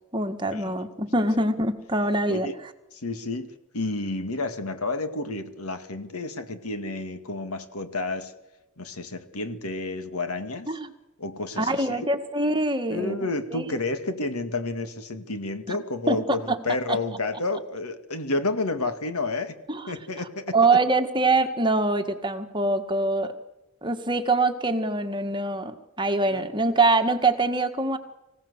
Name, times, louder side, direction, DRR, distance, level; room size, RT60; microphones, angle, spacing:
voice 1, 0.1-2.5 10.7-10.9 11.6-13.2 13.5-13.7 15.7-15.8 16.1-16.6 16.9-17.0 19.7-19.8 20.5-23.3 23.8-28.0, right 2 dB, 20° right, 7 dB, 1.7 m, -24 dB
voice 2, 3.0-8.3 8.8-10.8 11.2-12.1 12.9-19.6 19.9-20.5 26.3-26.5, left 2 dB, 85° left, 9 dB, 2.1 m, -30 dB
25.0 x 16.5 x 8.1 m, 0.96 s
head